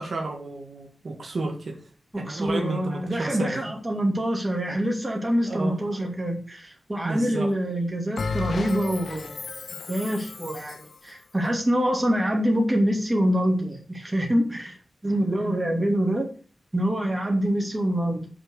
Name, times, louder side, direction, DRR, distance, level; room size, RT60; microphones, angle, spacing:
voice 1, 0.0-1.8 2.2-3.6 5.5-5.8 7.0-7.5, right 2 dB, 60° right, 1.9 m, -32 dB
voice 2, 2.2-9.5 9.7-14.8 15.0-16.3 16.7-18.3, equal, 15° right, 2.6 m, -25 dB
Bell, 8.2-10.9, left 4 dB, 70° left, 0.8 m, -33 dB
8.3 x 6.0 x 6.3 m
wide cardioid pair, 115°, 0 cm